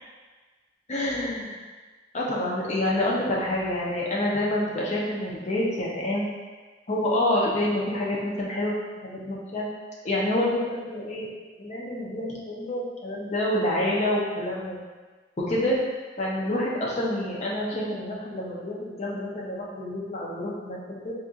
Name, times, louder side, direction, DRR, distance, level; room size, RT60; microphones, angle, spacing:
voice 1, 0.9-1.6 2.1-6.2 6.9-8.8 9.0-9.6 10.0-11.3 11.6-14.8 15.5-15.8 16.2-21.1, left 1 dB, 40° left, -4 dB, 0.6 m, -27 dB
4.1 x 2.5 x 2.4 m, 1.3 s
head